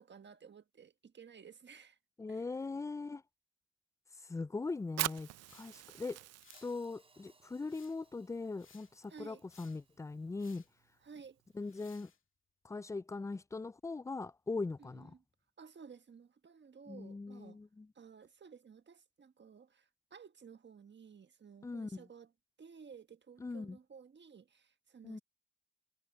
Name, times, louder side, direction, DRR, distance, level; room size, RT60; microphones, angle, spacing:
voice 1, 0.0-2.0 2.3-2.5 9.1-9.4 11.0-11.4 14.8-15.2 15.6-17.6 17.9-22.3 22.6-25.2, right 6 dB, 35° right, 1.3 m, -55 dB
voice 2, 2.2-3.2 4.2-6.2 6.6-10.6 11.5-12.1 12.6-15.1 16.9-17.9 21.6-22.0 23.4-23.8 25.0-25.2, left 3 dB, 10° left, 0.3 m, -40 dB
Fire, 4.8-12.0, right 14 dB, 55° right, 0.4 m, -46 dB
sound 1, 5.5-5.7 6.4-6.8 7.7-8.1 8.5-8.9 9.5-9.8 10.4-10.7 11.6-12.2, left 6 dB, 40° left, 2.3 m, -62 dB
Hi-hat, 6.5-10.7, right 3 dB, 20° right, 5.0 m, -70 dB
cardioid pair, 90°, 30 cm